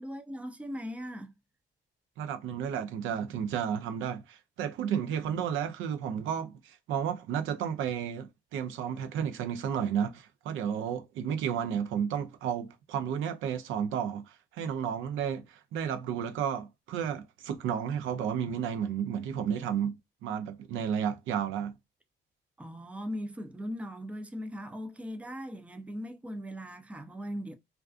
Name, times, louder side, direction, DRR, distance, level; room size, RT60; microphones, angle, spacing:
voice 1, 0.0-1.3 22.6-27.5, equal, 5° right, 0.4 m, -39 dB
voice 2, 2.2-20.0 20.2-21.7, right 8 dB, 85° right, 0.5 m, -32 dB
2.3 x 2.3 x 2.4 m
cardioid pair, 90°, 20 cm